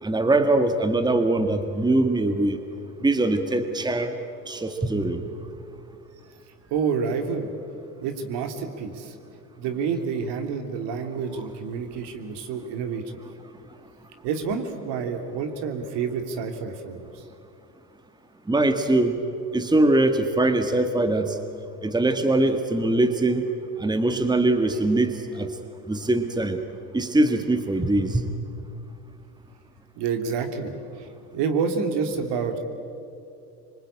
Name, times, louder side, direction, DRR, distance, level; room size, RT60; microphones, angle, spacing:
voice 1, 0.0-2.6 3.0-4.1 4.5-5.2 11.3-11.5 18.5-19.2 19.5-21.4 21.8-23.5 23.8-25.5 25.9-26.6 26.9-28.3, right 2 dB, 10° right, 7 dB, 1.9 m, -22 dB
voice 2, 6.7-7.5 8.0-9.1 9.6-13.2 14.2-17.2 30.0-32.6, right 5 dB, 60° right, 6 dB, 3.1 m, -28 dB
26.5 x 24.0 x 8.8 m, 2.6 s
hypercardioid pair, 70°, 48 cm